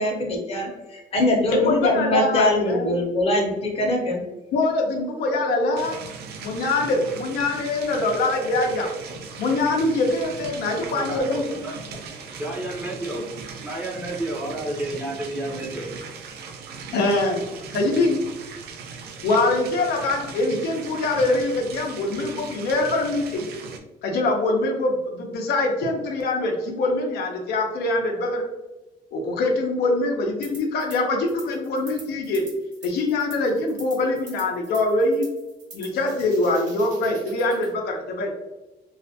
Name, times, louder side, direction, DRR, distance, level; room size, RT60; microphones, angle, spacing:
voice 1, 0.0-4.2, left 1 dB, 40° left, -1 dB, 0.7 m, -22 dB
voice 2, 1.5-3.0 4.5-6.0 6.4-8.9 9.4-11.5 16.9-17.4 17.7-18.2 19.2-23.5 24.0-28.4 29.1-32.5 32.8-35.3 35.7-38.3, left 2 dB, 85° left, 1 dB, 0.6 m, -23 dB
sound 1, 5.8-23.8, right 5 dB, 85° right, 0.4 m, -39 dB
voice 3, 10.7-11.7 12.3-13.3 13.6-15.9, right 1 dB, 10° right, -4 dB, 0.6 m, -31 dB
sound 2, 30.4-31.0 31.3-37.7, right 3 dB, 50° right, 0.9 m, -45 dB
2.4 x 2.1 x 2.7 m, 1.0 s
cardioid pair, 140°, 16 cm